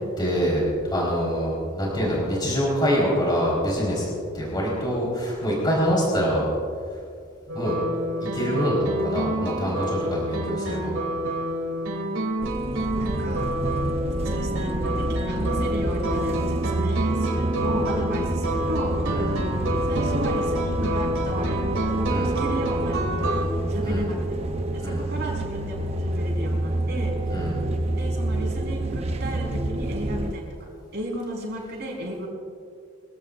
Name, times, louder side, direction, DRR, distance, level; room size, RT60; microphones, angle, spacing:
voice 1, 0.2-6.5 7.5-7.8 8.2-10.9 19.1-19.3 22.1-22.3 23.8-24.1 24.8-25.0 27.3-27.6, equal, 20° left, -5 dB, 4.2 m, -25 dB
sound 1, 7.5-23.5, right 1 dB, 85° right, 3.0 m, -28 dB
sound 2, 12.4-30.3, right 1 dB, 30° right, 0.7 m, -28 dB
voice 2, 12.7-13.5 14.2-19.0 19.8-24.5 24.7-27.5 27.9-30.5 30.9-32.3, right 1 dB, 55° right, -2 dB, 4.6 m, -34 dB
25.0 x 16.5 x 2.5 m, 2.3 s
head